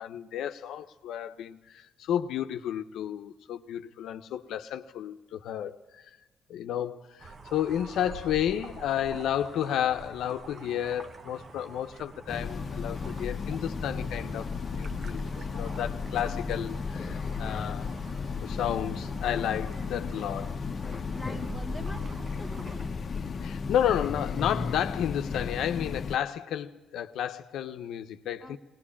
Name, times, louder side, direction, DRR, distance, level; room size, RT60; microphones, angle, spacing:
voice 1, 0.0-6.1 6.5-15.2 15.5-17.9 18.4-20.6 23.4-28.6, left 10 dB, 80° left, 0.9 m, -32 dB
sound 1, 7.2-22.9, right 3 dB, 40° right, 1.2 m, -45 dB
Train, 12.3-26.2, left 5 dB, 40° left, 1.0 m, -34 dB
voice 2, 21.1-23.0 28.4-28.6, left 2 dB, 5° left, 1.6 m, -44 dB
21.0 x 19.0 x 8.6 m
cardioid pair, 90°, 0 cm